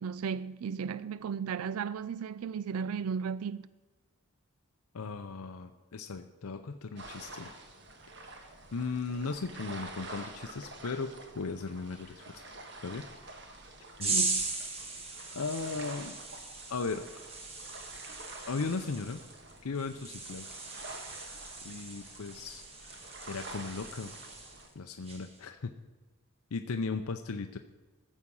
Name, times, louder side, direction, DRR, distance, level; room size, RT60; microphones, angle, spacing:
voice 1, 0.0-3.7 14.1-14.5, right 6 dB, 80° right, 0.4 m, -35 dB
voice 2, 4.9-7.5 8.3-12.4 12.8-13.0 14.0-14.2 15.3-16.2 16.7-17.1 18.5-19.2 19.6-20.5 21.6-23.0 23.3-24.1 24.8-25.7 26.5-27.6, left 4 dB, 85° left, 0.6 m, -37 dB
sound 1, 7.0-24.7, right 2 dB, 50° right, 1.4 m, -48 dB
sound 2, 14.0-24.7 25.0-25.4, right 3 dB, 25° right, 1.4 m, -39 dB
14.5 x 7.3 x 5.5 m
head